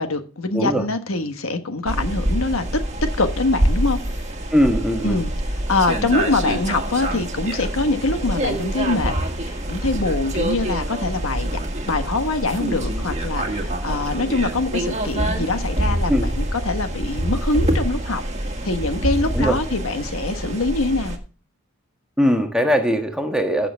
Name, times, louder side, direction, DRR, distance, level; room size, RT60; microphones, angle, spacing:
voice 1, 0.0-2.7 3.0-4.3 5.0-9.1 9.4-11.6 11.9-18.2 18.6-21.2, left 3 dB, 80° left, 1.4 m, -24 dB
voice 2, 0.5-0.8 4.5-5.2 16.1-16.3 19.3-19.6 22.2-23.7, equal, 5° right, 1.3 m, -20 dB
sound 1, 1.9-21.2, right 1 dB, 35° right, 1.6 m, -25 dB
15.0 x 6.8 x 3.5 m
head